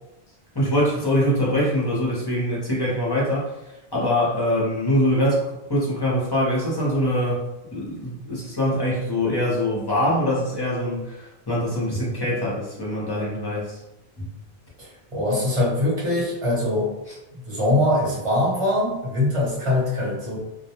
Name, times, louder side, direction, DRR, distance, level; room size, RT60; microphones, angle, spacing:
voice 1, 0.5-3.5 3.9-7.5 7.7-13.8 14.2-14.3, equal, 25° left, -5 dB, 0.7 m, -23 dB
voice 2, 14.8-16.9 17.4-20.4, left 1 dB, 35° right, -5 dB, 0.9 m, -22 dB
2.3 x 2.1 x 2.9 m, 0.93 s
omnidirectional pair, 1.1 m